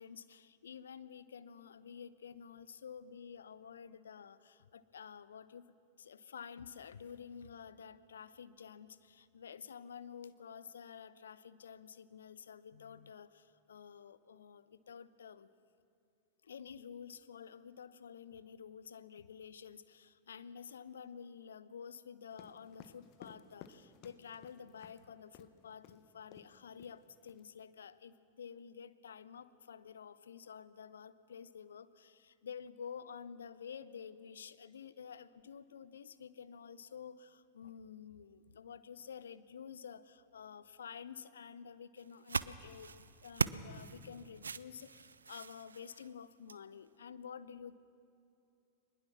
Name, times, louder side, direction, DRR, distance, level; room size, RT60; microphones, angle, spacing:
voice 1, 0.0-15.5 16.4-47.8, left 7 dB, 65° left, 15 dB, 0.7 m, -50 dB
sound 1, 22.3-25.0 25.3-25.5 25.8-26.0 26.3-26.5 26.8-27.4, left 9 dB, 40° left, 1.2 m, -56 dB
sound 2, 42.0-46.7, right 5 dB, 75° right, 0.5 m, -40 dB
22.0 x 20.0 x 6.2 m, 2.7 s
figure-of-eight pair, 90°, 0 cm